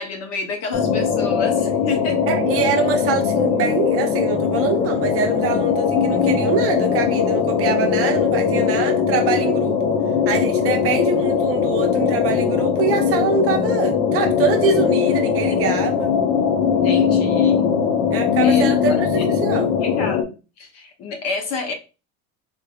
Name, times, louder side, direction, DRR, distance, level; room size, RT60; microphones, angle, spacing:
voice 1, 0.0-2.2 2.6-2.7 11.2-11.3 16.8-17.6 18.4-19.2 19.8-21.7, left 4 dB, 45° left, 0.8 m, -29 dB
sound 1, 0.7-20.2, left 7 dB, 75° left, 0.7 m, -20 dB
voice 2, 2.3-9.9 10.3-16.1 18.1-19.7, right 6 dB, 40° right, 0.6 m, -24 dB
3.7 x 3.2 x 2.3 m
cardioid pair, 150°, 35 cm